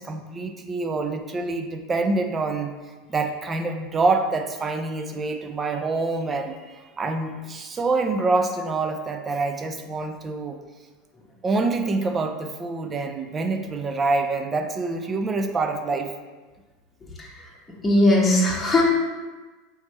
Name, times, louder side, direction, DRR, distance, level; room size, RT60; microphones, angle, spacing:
voice 1, 0.0-2.7 3.1-10.6 11.4-16.1, right 3 dB, 25° right, 5 dB, 0.4 m, -26 dB
voice 2, 17.2-17.5 17.8-18.8, left 1 dB, 15° left, -3 dB, 1.0 m, -19 dB
3.2 x 3.1 x 4.2 m, 1.3 s
hypercardioid pair, 90°, 0 cm